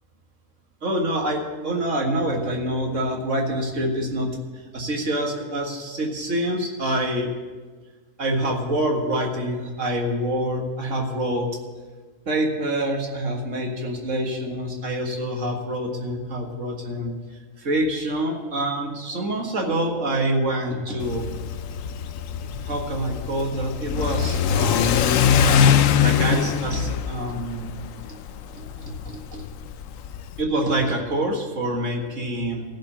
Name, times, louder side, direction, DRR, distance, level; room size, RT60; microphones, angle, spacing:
voice 1, 0.8-4.3 4.7-7.3 8.2-11.5 12.3-17.1 17.6-21.3 22.5-25.0 25.6-28.2 28.5-29.4 30.4-32.6, right 1 dB, 65° right, 1 dB, 2.1 m, -26 dB
Car / Accelerating revving vroom, 21.0-30.4, left 8 dB, 75° left, 1.0 m, -22 dB
14.5 x 5.6 x 8.6 m, 1.4 s
omnidirectional pair, 1.5 m